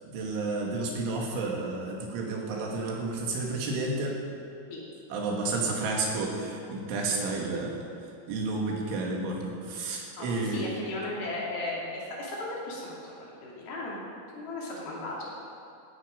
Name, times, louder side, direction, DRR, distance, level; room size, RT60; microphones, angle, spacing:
voice 1, 0.1-4.2 5.1-7.8 8.3-10.6, right 3 dB, 75° right, -1 dB, 4.4 m, -31 dB
voice 2, 10.2-13.2 13.4-14.0 14.4-15.3, left 2 dB, 55° left, -5 dB, 4.2 m, -36 dB
17.5 x 11.5 x 5.2 m, 2.5 s
omnidirectional pair, 5.5 m